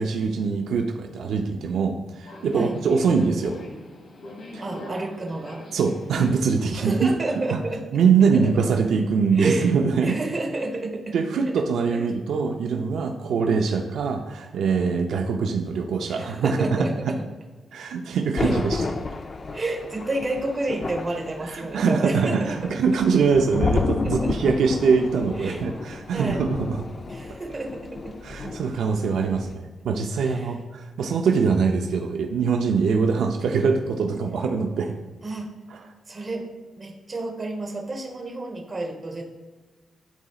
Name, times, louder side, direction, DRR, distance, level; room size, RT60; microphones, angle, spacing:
voice 1, 0.0-3.6 4.5-4.6 5.7-7.0 7.5-7.6 7.9-10.2 11.1-17.1 17.7-18.9 21.4-26.8 28.2-34.9, right 5 dB, 75° right, 3 dB, 0.5 m, -23 dB
Subway metro underground, 2.2-7.3, left 1 dB, 50° left, 1.5 m, -42 dB
voice 2, 4.6-5.6 6.7-7.8 9.3-9.7 10.0-11.1 11.9-12.1 16.1-17.2 18.4-18.5 19.5-22.8 24.2-24.4 25.4-25.6 26.1-26.4 27.1-28.1 30.2-30.5 35.2-35.5 36.1-39.3, right 2 dB, 25° right, 1 dB, 1.1 m, -30 dB
Thunder, 18.4-29.0 29.2-29.5, left 4 dB, 30° left, 0.4 m, -31 dB
11.5 x 4.0 x 2.4 m, 1.3 s
wide cardioid pair, 165°, 0 cm